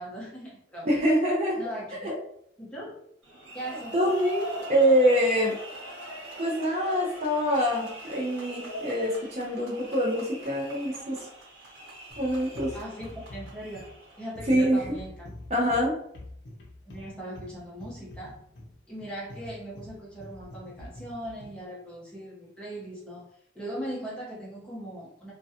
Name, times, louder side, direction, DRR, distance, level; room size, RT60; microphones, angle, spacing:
voice 1, 0.0-0.9 1.5-2.1 2.6-2.9 3.5-3.9 12.7-13.9 14.2-15.3 15.7-15.9 16.9-18.4 18.9-23.3 23.5-25.3, right 1 dB, 5° left, -6 dB, 0.7 m, -39 dB
voice 2, 0.8-1.6 2.0-2.2 3.9-5.5 6.4-11.3 12.2-12.8 14.5-14.8 15.5-15.9, equal, 35° right, -2 dB, 0.5 m, -25 dB
sound 1, 3.2-14.3, equal, 70° right, 1.2 m, -41 dB
sound 2, 12.1-21.7, left 1 dB, 65° left, 0.6 m, -45 dB
2.3 x 2.2 x 2.7 m, 0.70 s
head